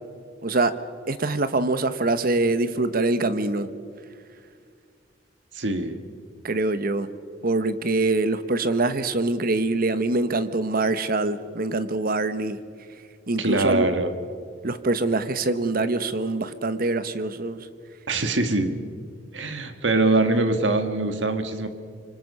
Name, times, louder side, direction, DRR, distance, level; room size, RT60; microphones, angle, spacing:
voice 1, 0.4-0.8 1.1-3.7 6.4-7.1 7.4-12.6 13.3-13.9 14.6-17.7, right 2 dB, 50° right, 12 dB, 1.0 m, -24 dB
voice 2, 5.5-6.0 13.4-14.1 18.1-18.7 19.3-21.7, right 2 dB, 80° right, 8 dB, 1.7 m, -23 dB
26.0 x 24.0 x 5.6 m, 2.2 s
head